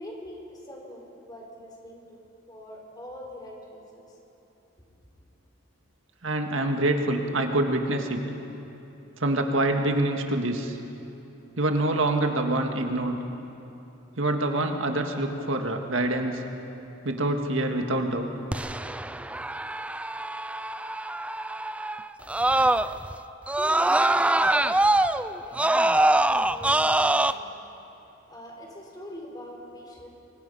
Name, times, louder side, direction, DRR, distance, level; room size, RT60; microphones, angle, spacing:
voice 1, 0.0-2.2 2.5-4.2 4.8-4.9 23.1-23.3 23.6-24.9 25.4-30.1, left 1 dB, 20° left, -1 dB, 4.6 m, -44 dB
voice 2, 6.2-8.2 9.2-10.8 11.6-13.2 14.2-16.4 17.0-18.3, right 1 dB, 75° right, 4 dB, 1.9 m, -26 dB
Screaming, 18.5-23.1 23.5-27.3, right 2 dB, 5° right, 0.4 m, -24 dB
29.0 x 23.5 x 5.6 m, 3.0 s
head